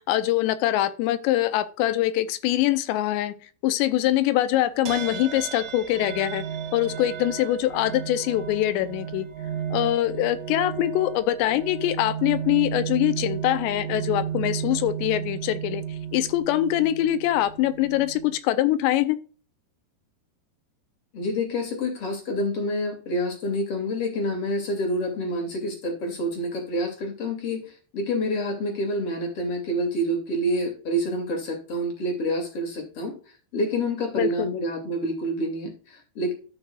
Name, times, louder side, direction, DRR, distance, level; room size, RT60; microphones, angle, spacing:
voice 1, 0.1-3.3 3.6-6.4 6.7-9.3 9.7-15.8 16.1-19.2 34.1-34.5, left 13 dB, 85° left, 2.8 m, -23 dB
sound 1, 4.9-18.4, right 9 dB, 60° right, 2.0 m, -34 dB
voice 2, 21.1-33.1 33.5-36.3, equal, 40° left, 2.8 m, -28 dB
13.0 x 6.2 x 2.4 m
omnidirectional pair, 5.1 m